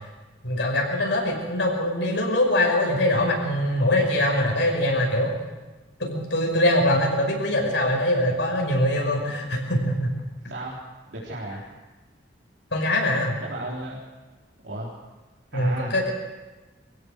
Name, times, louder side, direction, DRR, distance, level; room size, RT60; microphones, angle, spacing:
voice 1, 0.4-5.3 6.0-10.2 12.7-13.4 15.5-16.1, left 1 dB, 75° left, 1 dB, 5.7 m, -23 dB
voice 2, 10.5-10.8 11.1-11.6 13.4-14.0 14.6-14.9 15.5-15.9, right 1 dB, 75° right, -7 dB, 4.1 m, -34 dB
24.5 x 16.5 x 6.7 m, 1.2 s
head